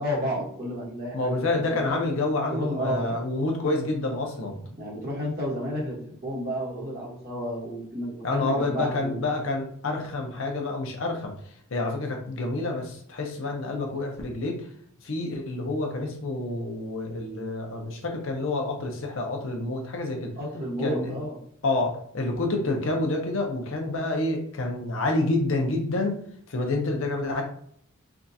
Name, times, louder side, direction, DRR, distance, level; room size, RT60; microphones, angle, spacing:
voice 1, 0.0-2.0 2.5-3.2 4.8-9.2 20.4-21.4, equal, 45° right, -5 dB, 1.3 m, -31 dB
voice 2, 1.1-4.6 8.2-11.3 11.7-14.6 15.0-20.3 20.8-21.1 21.6-26.2 26.5-27.4, left 2 dB, 65° left, 2 dB, 0.7 m, -28 dB
3.5 x 2.4 x 2.7 m, 0.63 s
head